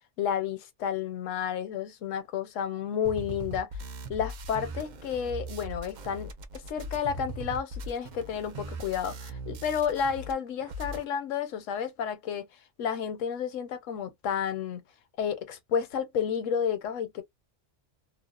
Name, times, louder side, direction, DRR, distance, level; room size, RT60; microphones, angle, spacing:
voice 1, 0.2-3.7 4.1-12.4 12.8-14.8 15.2-17.2, left 8 dB, 85° left, 1.0 m, -31 dB
sound 1, 3.0-10.3 10.6-11.0, right 1 dB, 70° right, 0.4 m, -40 dB
2.6 x 2.1 x 2.3 m
omnidirectional pair, 1.3 m